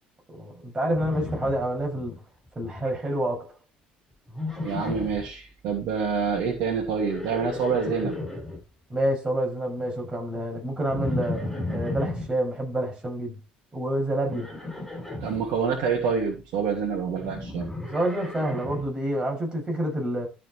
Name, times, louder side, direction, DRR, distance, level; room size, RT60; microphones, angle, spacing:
voice 1, 0.4-2.1 2.6-3.5 8.9-13.4 13.7-14.5 17.9-20.3, right 1 dB, 20° right, 7.3 m, -28 dB
Livestock farm animals working animals, 0.9-2.2 2.5-3.0 4.3-5.3 6.9-8.6 10.9-12.3 14.3-15.4 17.2-18.9, left 2 dB, 5° left, 7.6 m, -34 dB
voice 2, 4.6-8.2 15.2-17.7, right 6 dB, 55° right, 2.9 m, -27 dB
13.5 x 6.2 x 4.6 m
figure-of-eight pair, 60°, 5 cm